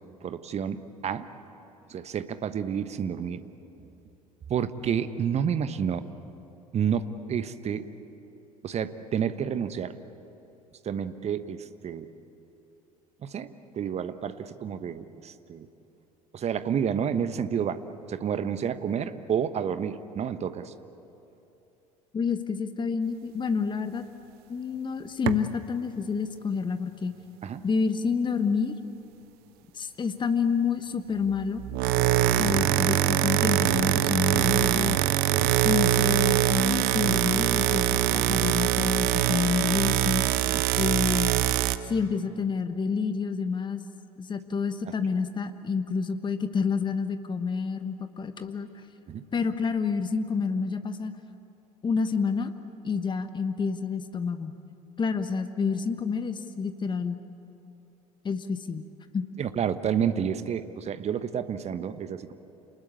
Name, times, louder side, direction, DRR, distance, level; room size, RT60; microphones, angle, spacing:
voice 1, 0.2-1.3 1.9-3.4 4.5-6.0 6.7-7.9 8.6-9.9 10.8-12.1 13.2-13.5 13.8-15.7 16.3-17.8 18.1-20.7 27.4-27.6 40.5-40.6 49.1-49.2 59.4-62.3, right 8 dB, 35° right, 12 dB, 1.2 m, -30 dB
voice 2, 22.1-24.0 24.5-27.1 27.6-28.7 29.7-31.6 32.4-35.0 35.6-40.2 40.8-41.3 41.8-43.8 44.2-48.8 49.3-51.1 51.8-52.5 52.8-54.5 55.0-57.2 58.2-58.9 59.1-59.3, left 5 dB, 25° left, 10 dB, 1.2 m, -28 dB
sound 1, 25.3-25.5 31.6-41.8, right 13 dB, 50° right, 0.9 m, -23 dB
28.5 x 20.5 x 8.4 m, 2.9 s
figure-of-eight pair, 65°, 20 cm